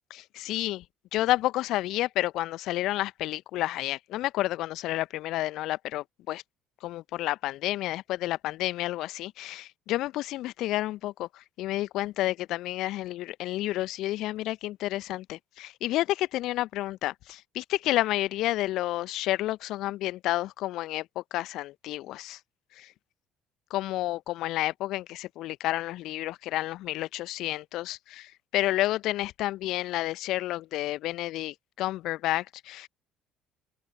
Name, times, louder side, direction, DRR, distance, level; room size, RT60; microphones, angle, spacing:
voice 1, 0.1-0.8 1.1-6.4 6.8-22.4 22.8-22.9 23.7-32.9, left 16 dB, 60° left, 1.2 m, -30 dB
figure-of-eight pair, 55°, 0 cm